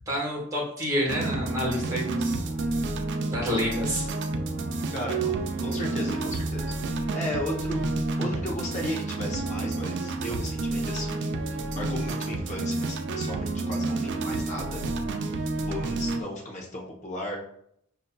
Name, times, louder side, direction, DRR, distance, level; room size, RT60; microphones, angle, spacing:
voice 1, 0.1-2.4 3.2-4.1, equal, 15° right, -4 dB, 1.3 m, -28 dB
sound 1, 1.1-16.2, right 2 dB, 55° right, 0.3 m, -30 dB
voice 2, 4.9-6.7 7.1-7.8 8.2-11.4 11.7-14.8 15.7-17.4, left 1 dB, 35° left, -1 dB, 0.7 m, -35 dB
5.4 x 2.6 x 2.2 m, 0.71 s
head